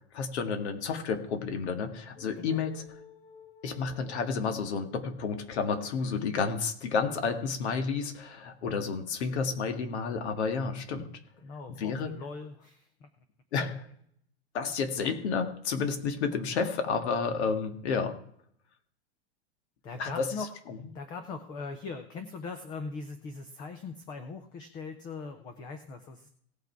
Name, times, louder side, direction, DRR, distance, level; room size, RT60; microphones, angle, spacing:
voice 1, 0.1-2.8 3.6-11.1 11.7-12.1 13.5-13.9 14.5-18.2 20.0-20.3, left 5 dB, 90° left, 7 dB, 2.0 m, -31 dB
sound 1, 2.2-5.9, left 7 dB, 40° left, 1.6 m, -53 dB
voice 2, 11.4-13.1 19.8-20.5 20.9-26.3, left 4 dB, 15° left, 8 dB, 0.4 m, -40 dB
17.5 x 5.9 x 4.6 m, 0.65 s
supercardioid pair, 175°, 32 cm